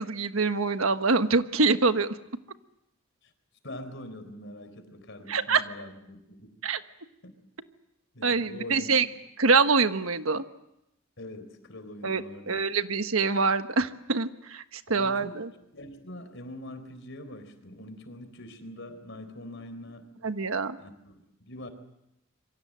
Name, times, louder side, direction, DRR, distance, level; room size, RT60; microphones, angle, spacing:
voice 1, 0.0-2.1 5.3-5.6 6.6-6.8 8.2-9.1 9.4-10.4 12.0-12.2 12.5-15.5 20.2-20.8, right 4 dB, 85° right, 9 dB, 1.3 m, -25 dB
voice 2, 3.6-6.6 7.2-7.3 8.1-8.9 11.2-12.7 14.9-15.4 15.7-20.1 20.8-21.7, left 1 dB, 65° left, 9 dB, 4.1 m, -43 dB
27.5 x 24.0 x 7.7 m, 0.84 s
head